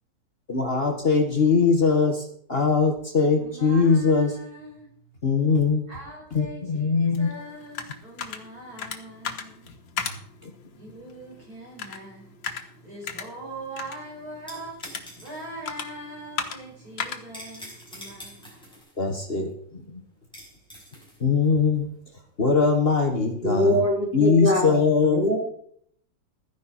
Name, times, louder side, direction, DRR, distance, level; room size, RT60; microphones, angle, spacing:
voice 1, 0.5-4.3 5.2-5.9 6.3-7.3 10.4-10.5 19.0-20.0 21.2-21.9 22.4-23.8 24.1-25.3, left 4 dB, 35° left, 3 dB, 1.6 m, -21 dB
voice 2, 3.4-5.3 5.9-18.7, right 1 dB, 55° right, -2 dB, 5.6 m, -42 dB
sound 1, 7.1-18.8, left 7 dB, 85° left, 2.0 m, -38 dB
sound 2, 13.4-24.3, equal, ahead, 5.1 m, -47 dB
voice 3, 23.4-25.4, left 1 dB, 80° right, 0 dB, 3.9 m, -23 dB
13.0 x 10.5 x 4.3 m, 0.62 s
omnidirectional pair, 2.0 m